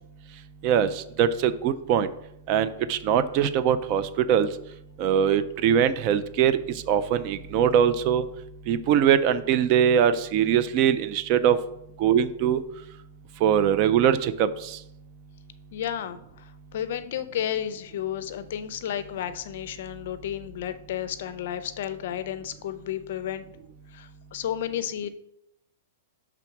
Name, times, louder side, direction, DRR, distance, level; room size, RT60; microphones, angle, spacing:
voice 1, 0.6-2.1 2.5-4.5 5.0-6.6 6.9-8.2 8.7-11.6 12.0-12.6 13.4-14.8, right 9 dB, 30° right, 13 dB, 0.3 m, -22 dB
voice 2, 15.7-23.4 23.9-25.1, left 10 dB, 50° left, 12 dB, 0.5 m, -32 dB
5.9 x 3.5 x 5.8 m, 0.80 s
hypercardioid pair, 170°, 0 cm